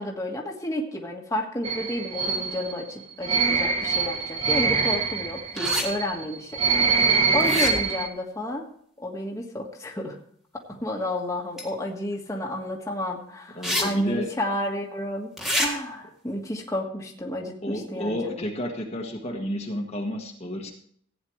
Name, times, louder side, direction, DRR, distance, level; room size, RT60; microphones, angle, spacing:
voice 1, 0.0-6.6 7.3-8.7 9.0-10.2 10.7-15.3 15.6-18.5, left 1 dB, 15° left, 0 dB, 1.6 m, -31 dB
sound 1, 1.6-8.1, right 4 dB, 30° right, 1.1 m, -24 dB
sound 2, 5.6-5.9 7.4-8.0 11.6-11.7 13.6-13.8 14.2-14.3 15.4-15.7, left 1 dB, ahead, 1.8 m, -27 dB
voice 2, 13.5-14.3 17.6-20.7, equal, 35° left, 0 dB, 1.4 m, -31 dB
15.5 x 9.4 x 3.2 m, 0.63 s
head